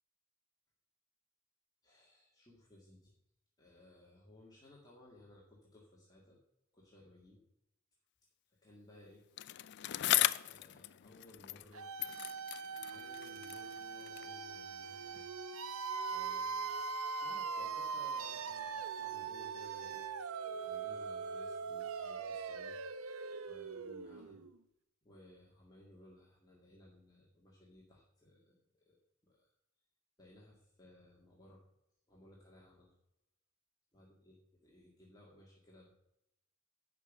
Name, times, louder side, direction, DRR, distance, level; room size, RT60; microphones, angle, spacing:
voice 1, 1.8-3.2 3.6-6.4 6.7-7.4 8.6-9.2 10.3-11.9 12.9-15.3 16.1-16.8 17.2-20.1 20.5-22.8 23.4-24.4 25.0-28.9 29.2-29.4 30.2-31.6 32.1-32.9 33.9-35.9, left 1 dB, 20° left, -4 dB, 2.0 m, -60 dB
Bicycle, 9.4-11.7 12.0-14.4 15.1-15.2, left 14 dB, 55° left, 0.4 m, -37 dB
sound 1, 11.7-24.6, right 5 dB, 80° right, 0.7 m, -41 dB
11.0 x 5.3 x 7.4 m, 0.83 s
head